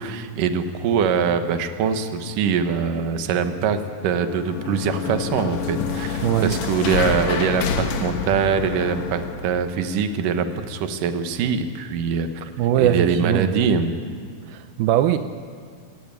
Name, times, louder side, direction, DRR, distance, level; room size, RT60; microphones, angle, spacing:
voice 1, 0.0-12.5 12.8-13.9, right 6 dB, 65° right, 8 dB, 2.2 m, -23 dB
sound 1, 4.1-9.6, left 6 dB, 80° left, 1.5 m, -27 dB
voice 2, 6.2-6.6 12.6-13.6 14.5-15.2, right 11 dB, 85° right, 9 dB, 2.1 m, -21 dB
28.5 x 14.0 x 9.1 m, 2.1 s
omnidirectional pair, 5.3 m